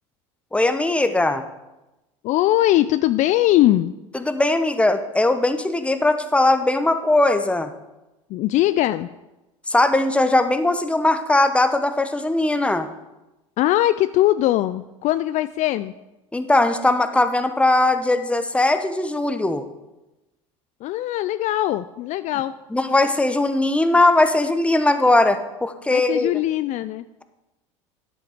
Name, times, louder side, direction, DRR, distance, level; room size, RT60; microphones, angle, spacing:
voice 1, 0.5-1.4 4.1-7.7 9.7-12.9 16.3-19.7 22.7-26.4, left 2 dB, 5° left, 9 dB, 0.9 m, -19 dB
voice 2, 2.2-3.9 8.3-9.1 13.6-15.9 20.8-22.5 25.9-27.1, left 14 dB, 45° left, 13 dB, 0.4 m, -20 dB
10.5 x 7.9 x 5.0 m, 1.0 s
hypercardioid pair, 85°, 17 cm